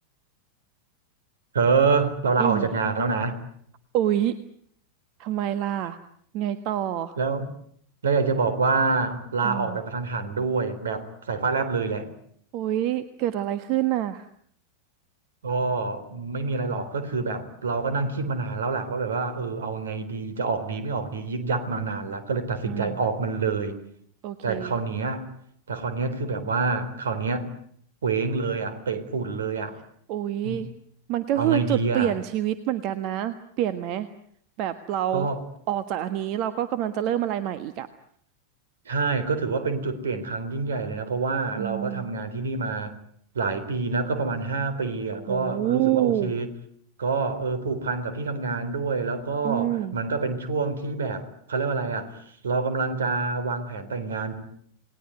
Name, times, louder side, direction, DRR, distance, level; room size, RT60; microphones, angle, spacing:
voice 1, 1.5-3.4 7.2-7.5 8.0-12.1 15.4-23.8 24.4-25.3 25.7-27.5 28.0-29.8 30.4-30.6 31.4-32.1 35.1-35.4 38.9-42.9 43.3-46.5 47.0-52.2 52.4-54.3, right 4 dB, 65° right, 12 dB, 3.8 m, -27 dB
voice 2, 3.9-4.3 5.2-6.0 6.3-7.2 9.4-9.8 12.5-14.3 22.6-23.0 24.2-24.7 30.1-30.7 31.1-34.1 34.6-35.3 35.7-37.9 41.6-42.1 45.3-46.3 49.4-50.0, right 12 dB, 40° right, 12 dB, 1.4 m, -27 dB
29.0 x 20.0 x 9.5 m, 0.66 s
figure-of-eight pair, 90°, 0 cm